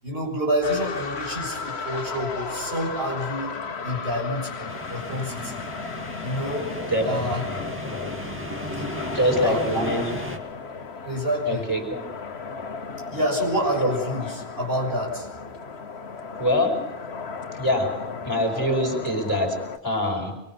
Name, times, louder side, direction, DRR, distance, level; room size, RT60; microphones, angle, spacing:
voice 1, 0.0-3.5 3.8-5.6 6.2-6.7 7.0-7.5 8.7-9.9 11.0-11.7 13.1-15.3, equal, 65° right, -1 dB, 6.7 m, -28 dB
sound 1, 0.6-19.8, left 5 dB, 90° left, 1.5 m, -35 dB
sound 2, 4.7-10.4, equal, 10° right, 2.3 m, -35 dB
voice 2, 9.1-10.1 11.5-12.0 13.8-13.9 16.4-16.9 17.6-20.4, left 1 dB, 20° left, 1 dB, 5.2 m, -24 dB
26.0 x 23.0 x 6.0 m, 0.87 s
omnidirectional pair, 1.1 m